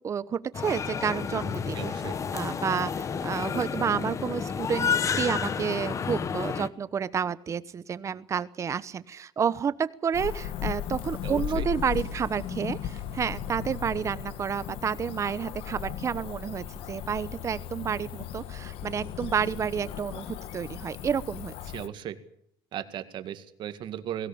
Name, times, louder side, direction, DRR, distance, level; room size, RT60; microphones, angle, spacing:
voice 1, 0.0-1.8 2.3-4.9 5.2-21.5, right 7 dB, 30° right, 15 dB, 1.0 m, -30 dB
sound 1, 0.5-6.7, left 6 dB, 35° left, 1.1 m, -30 dB
voice 2, 1.7-2.1 11.2-11.7 21.7-22.2 22.7-24.3, right 10 dB, 55° right, 9 dB, 2.1 m, -36 dB
Cricket / Motor vehicle (road), 10.1-21.9, left 10 dB, 75° left, 1.4 m, -36 dB
22.5 x 17.5 x 8.8 m, 0.68 s
cardioid pair, 150°, 9 cm